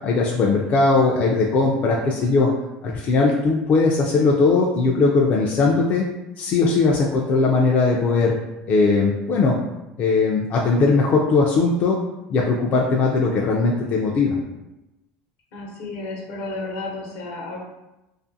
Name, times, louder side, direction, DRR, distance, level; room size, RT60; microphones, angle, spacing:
voice 1, 0.0-2.5 2.8-6.1 6.4-8.4 8.7-9.5 10.0-12.0 12.3-14.4, left 3 dB, 45° left, -2 dB, 0.3 m, -19 dB
voice 2, 15.5-17.6, left 2 dB, 75° left, -2 dB, 0.8 m, -32 dB
2.4 x 2.4 x 2.6 m, 0.95 s
supercardioid pair, 125°, 4 cm